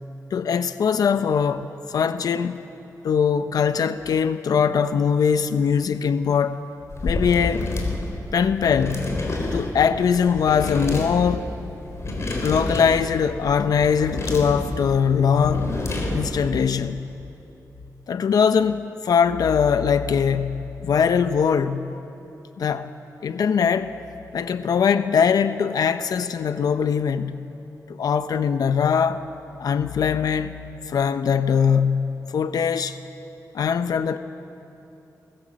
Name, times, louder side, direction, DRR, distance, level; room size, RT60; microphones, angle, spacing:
voice 1, 0.3-2.6 3.0-6.6 7.0-7.7 8.3-9.1 9.5-11.5 12.4-15.8 16.1-17.1 18.1-21.9 22.6-22.9 23.2-23.9 24.3-27.4 28.0-29.2 29.6-30.5 30.9-33.0 33.5-34.2, left 6 dB, 90° left, 10 dB, 0.7 m, -21 dB
sound 1, 6.9-16.5, left 2 dB, 50° left, 4.0 m, -29 dB
24.0 x 19.5 x 7.6 m, 2.9 s
wide cardioid pair, 120°, 6 cm